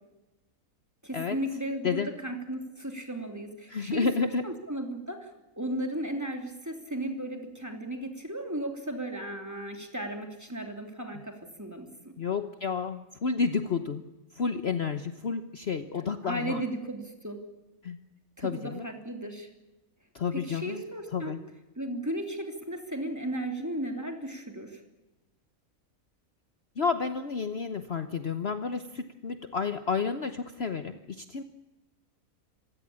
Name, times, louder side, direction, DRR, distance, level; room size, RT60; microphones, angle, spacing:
voice 1, 1.0-4.1 4.4-12.1 16.2-17.4 18.4-19.5 20.3-21.3 21.8-24.8, right 1 dB, 10° right, 4 dB, 3.2 m, -35 dB
voice 2, 3.7-4.5 12.2-14.0 14.3-16.6 17.8-18.0 18.4-18.9 20.1-20.8 21.1-21.4 26.8-31.4, left 5 dB, 50° left, 9 dB, 1.2 m, -30 dB
27.0 x 16.5 x 8.6 m, 1.0 s
omnidirectional pair, 1.5 m